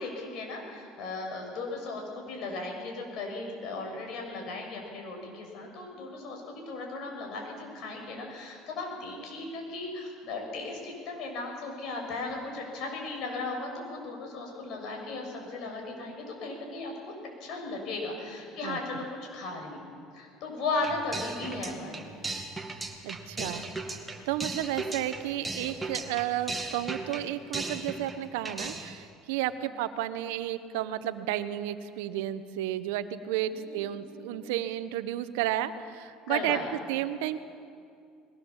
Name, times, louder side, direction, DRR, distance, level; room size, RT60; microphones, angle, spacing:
voice 1, 0.0-17.1 17.4-19.0 19.3-19.8 20.1-22.1 33.5-34.3 36.3-36.7, left 3 dB, 60° left, 1 dB, 6.8 m, -36 dB
sound 1, 20.8-28.2 28.5-29.0, right 3 dB, 15° right, 2.2 m, -37 dB
voice 2, 23.0-23.7 24.3-37.4, right 12 dB, 85° right, 12 dB, 1.0 m, -32 dB
21.0 x 17.5 x 7.3 m, 2.4 s
supercardioid pair, 105°, 0 cm